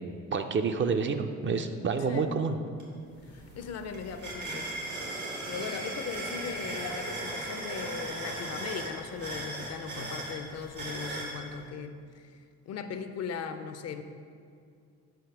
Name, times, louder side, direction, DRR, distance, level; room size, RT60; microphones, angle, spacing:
voice 1, 0.3-2.6, right 5 dB, 40° right, 7 dB, 0.4 m, -28 dB
sound 1, 2.8-2.9 3.2-11.4, right 1 dB, 85° right, 1.6 m, -37 dB
voice 2, 3.3-4.7 5.5-14.0, left 6 dB, 55° left, 9 dB, 0.5 m, -39 dB
5.0 x 5.0 x 5.8 m, 2.3 s
cardioid pair, 90°, 30 cm